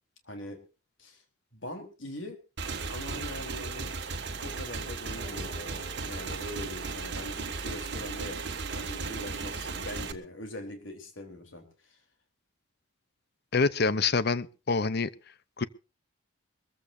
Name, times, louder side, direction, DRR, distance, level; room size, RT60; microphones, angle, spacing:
voice 1, 0.2-0.6 1.0-1.2 1.5-2.4 2.9-3.9 4.4-12.0, left 1 dB, 70° left, 3.8 m, -42 dB
Motorcycle / Engine, 2.6-10.1, right 4 dB, 60° right, 1.6 m, -36 dB
sound 1, 5.1-7.8, left 1 dB, 25° left, 5.9 m, -53 dB
voice 2, 13.5-15.1 15.6-15.7, left 4 dB, 55° left, 0.7 m, -26 dB
23.0 x 15.0 x 2.7 m
head